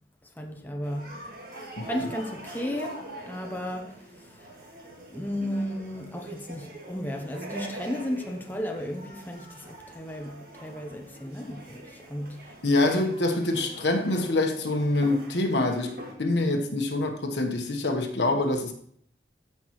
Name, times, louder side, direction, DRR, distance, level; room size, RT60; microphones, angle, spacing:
voice 1, 0.3-1.2 1.9-13.1, equal, 10° left, 0.7 m, -35 dB
sound 1, 0.8-16.1, right 1 dB, 55° right, 2.0 m, -43 dB
voice 2, 12.6-15.9 16.2-18.7, left 2 dB, 85° left, 1.2 m, -25 dB
14.0 x 5.8 x 3.1 m
head